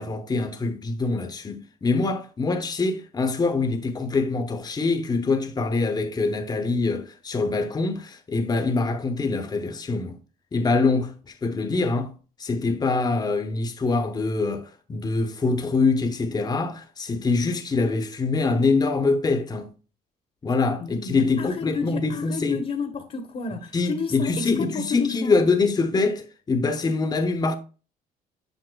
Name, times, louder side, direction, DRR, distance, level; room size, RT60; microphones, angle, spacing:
voice 1, 0.0-10.2 10.5-12.1 12.4-19.7 20.4-22.7 23.7-27.6, left 3 dB, 25° left, 0.9 m, -24 dB
voice 2, 20.8-25.3, left 5 dB, 45° left, 1.1 m, -31 dB
7.9 x 5.3 x 2.2 m
cardioid pair, 95°, 16 cm